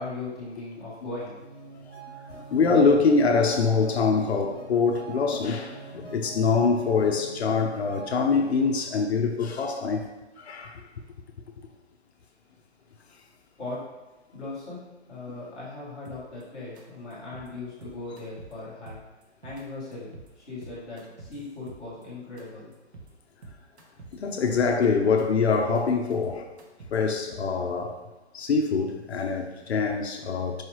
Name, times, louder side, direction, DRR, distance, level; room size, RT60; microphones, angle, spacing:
voice 1, 0.0-1.3 13.6-13.9 14.3-19.0 19.4-22.7, left 2 dB, ahead, -20 dB, 0.9 m, -38 dB
sound 1, 1.2-8.7, right 2 dB, 30° left, 0.9 m, -44 dB
voice 2, 2.3-10.1 10.4-10.8 24.1-26.5 26.9-28.0 28.3-30.6, left 4 dB, 65° left, 3 dB, 0.6 m, -24 dB
sound 2, 16.0-16.4 16.8-16.9 17.1-17.5 17.8-18.5 18.9-19.6 19.9-20.3 20.6-22.0 22.4-22.5 22.7-23.1 23.4-24.1 24.5-25.2 25.5-27.1, right 3 dB, 70° right, 0.9 m, -46 dB
4.7 x 3.1 x 3.0 m, 1.1 s
hypercardioid pair, 180°, 34 cm